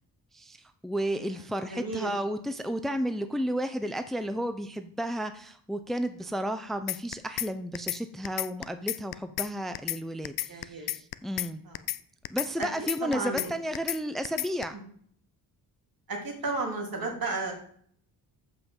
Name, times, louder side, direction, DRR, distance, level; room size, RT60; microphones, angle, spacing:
voice 1, 0.3-11.6 12.3-14.7, equal, ahead, 9 dB, 0.8 m, -32 dB
voice 2, 1.7-2.2 10.5-10.9 11.6-11.8 12.6-13.5 14.7-14.8 16.1-17.5, right 3 dB, 55° right, 0 dB, 3.6 m, -34 dB
sound 1, 6.9-7.5 7.7-8.0 8.2-9.5 9.7-10.0 10.2-11.5 11.7-12.0 12.2-13.5 13.7-14.0 14.2-14.6, left 12 dB, 65° left, 0.6 m, -31 dB
9.1 x 5.9 x 7.4 m, 0.62 s
cardioid pair, 75°, 41 cm